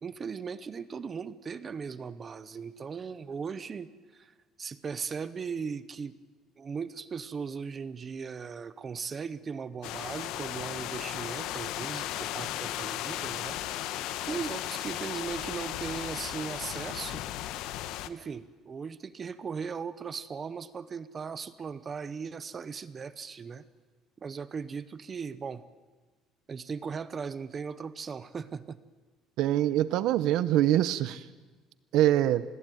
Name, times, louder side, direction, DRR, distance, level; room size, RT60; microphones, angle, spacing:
voice 1, 0.0-4.3 4.6-6.1 6.6-13.6 14.3-17.2 18.1-23.6 24.2-25.6 26.5-28.8, right 6 dB, 25° right, 15 dB, 0.8 m, -38 dB
sound 1, 9.8-18.1, left 13 dB, 65° left, 1.2 m, -35 dB
voice 2, 29.4-31.2 31.9-32.4, right 13 dB, 60° right, 15 dB, 0.8 m, -24 dB
27.0 x 20.5 x 9.2 m, 1.3 s
cardioid pair, 175°, 0 cm